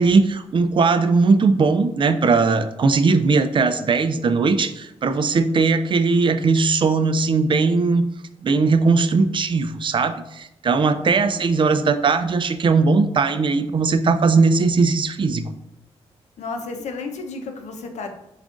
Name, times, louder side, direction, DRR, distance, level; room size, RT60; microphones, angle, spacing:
voice 1, 0.0-8.0 8.4-15.4, right 4 dB, 45° right, 11 dB, 0.4 m, -19 dB
voice 2, 11.0-11.4 16.4-18.1, left 3 dB, 75° left, 5 dB, 0.6 m, -32 dB
7.2 x 2.4 x 2.5 m, 0.87 s
cardioid pair, 70°, 12 cm